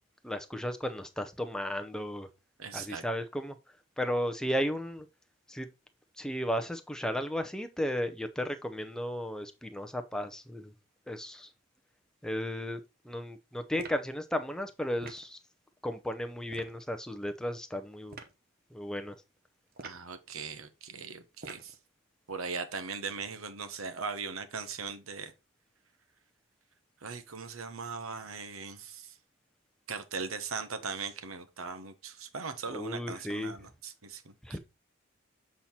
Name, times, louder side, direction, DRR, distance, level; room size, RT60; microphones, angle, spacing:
voice 1, 0.2-2.3 2.7-3.6 4.0-5.1 5.5-5.7 6.2-10.7 11.1-11.5 12.2-15.4 15.8-18.2 18.7-19.2 32.7-33.5 34.4-34.6, equal, 5° left, 0.6 m, -34 dB
voice 2, 2.6-3.0 19.8-21.7 22.3-25.3 27.0-29.1 29.9-34.6, right 5 dB, 80° right, 1.0 m, -39 dB
sound 1, 13.8-14.1 15.0-15.3 16.5-16.8 18.1-18.4 19.7-20.1 21.4-21.8, right 3 dB, 45° right, 0.9 m, -46 dB
7.3 x 4.3 x 4.2 m
head